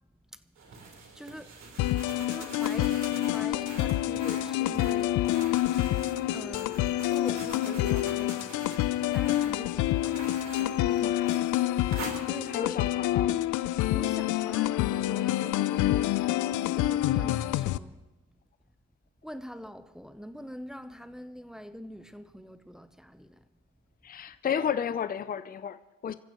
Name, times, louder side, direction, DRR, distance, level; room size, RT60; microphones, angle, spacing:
sound 1, 0.6-13.0, right 4 dB, 60° right, 4.1 m, -45 dB
voice 1, 1.1-5.3 6.3-11.1 12.3-13.5 13.9-16.2 16.7-18.0 19.2-23.4, equal, ahead, 0.8 m, -44 dB
sound 2, 1.8-17.8, left 14 dB, 80° left, 0.5 m, -27 dB
voice 2, 11.0-11.4 12.5-13.3 24.0-26.1, left 8 dB, 30° left, 0.6 m, -33 dB
26.5 x 15.0 x 3.1 m
cardioid pair, 90°, 30 cm